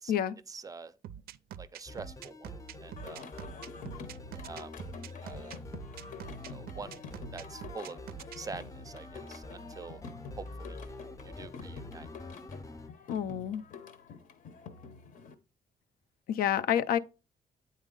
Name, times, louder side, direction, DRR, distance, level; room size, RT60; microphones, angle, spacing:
voice 1, 0.5-0.9 1.6-2.5 2.8-3.2 4.3-4.7 5.2-5.6 6.5-7.0 7.3-8.0 8.4-10.0 10.4-11.0 11.2-12.1, right 4 dB, 25° right, 0.4 m, -45 dB
sound 1, 1.0-8.4, right 10 dB, 90° right, 0.4 m, -45 dB
sound 2, 1.9-12.9, left 2 dB, 20° left, 0.6 m, -47 dB
Singing, 3.0-15.3, left 5 dB, 60° left, 0.8 m, -48 dB
voice 2, 13.1-13.6 16.3-17.0, left 10 dB, 80° left, 0.5 m, -28 dB
8.9 x 4.1 x 3.8 m
cardioid pair, 150°, 15 cm